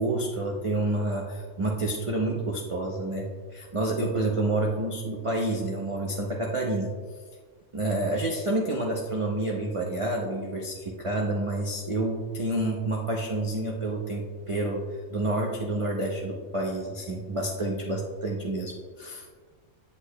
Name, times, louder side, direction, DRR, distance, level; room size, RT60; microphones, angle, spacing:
voice 1, 0.0-6.9 7.7-14.8 15.1-19.3, right 2 dB, 40° right, -1 dB, 0.4 m, -29 dB
8.4 x 8.1 x 2.2 m, 1.5 s
omnidirectional pair, 1.5 m